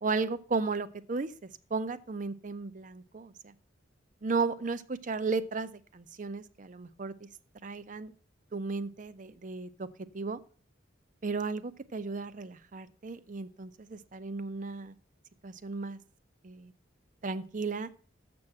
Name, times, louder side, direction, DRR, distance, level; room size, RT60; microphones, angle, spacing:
voice 1, 0.0-3.5 4.2-7.3 7.6-8.1 8.5-9.9 10.1-10.4 11.2-15.0 15.4-16.0 16.4-16.7 17.2-17.9, right 4 dB, 40° right, 14 dB, 0.5 m, -35 dB
7.5 x 6.1 x 7.4 m, 0.43 s
head